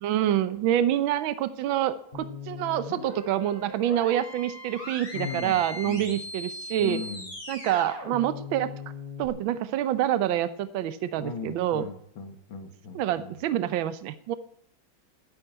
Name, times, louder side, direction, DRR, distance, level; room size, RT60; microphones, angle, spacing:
voice 1, 0.0-7.0 7.5-8.7 9.2-11.9 12.9-14.4, right 11 dB, 80° right, 13 dB, 1.5 m, -27 dB
sound 1, 2.1-9.3, left 2 dB, 25° left, 3.9 m, -39 dB
voice 2, 5.1-5.6 5.8-6.1 6.8-7.2 11.2-13.0, left 6 dB, 85° left, 7 dB, 2.3 m, -37 dB
11.0 x 8.5 x 8.9 m, 0.68 s
omnidirectional pair, 2.1 m